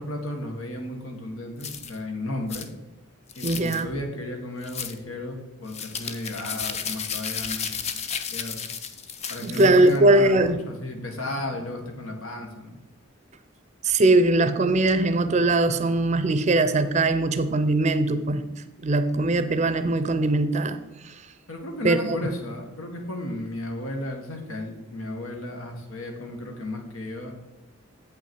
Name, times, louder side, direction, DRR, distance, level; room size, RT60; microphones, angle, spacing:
voice 1, 0.0-2.7 3.3-8.0 8.3-8.6 9.3-12.8 21.5-27.3, left 1 dB, 90° left, 3 dB, 1.6 m, -34 dB
sound 1, 1.6-2.0 2.5-2.7 3.3-3.8 4.6-5.0 5.7-10.0, left 6 dB, 30° left, 0.5 m, -33 dB
voice 2, 3.4-3.9 9.4-10.6 11.0-11.1 13.8-18.4 18.8-21.1 21.8-22.3, right 2 dB, 35° right, 11 dB, 0.5 m, -21 dB
8.0 x 5.7 x 4.6 m, 1.0 s
head